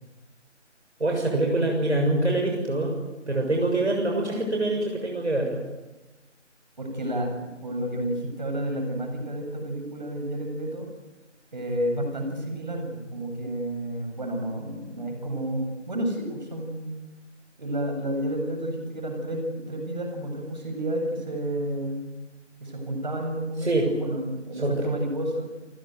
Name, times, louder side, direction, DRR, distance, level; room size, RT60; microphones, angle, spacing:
voice 1, 1.0-3.0 3.3-5.6 23.6-23.9 24.6-24.9, right 2 dB, 65° right, 1 dB, 6.9 m, -25 dB
voice 2, 6.8-10.9 11.5-16.9 17.6-22.1 22.6-25.5, right 1 dB, 35° right, 4 dB, 7.9 m, -30 dB
29.0 x 20.5 x 9.4 m, 1.1 s
figure-of-eight pair, 170°, 37 cm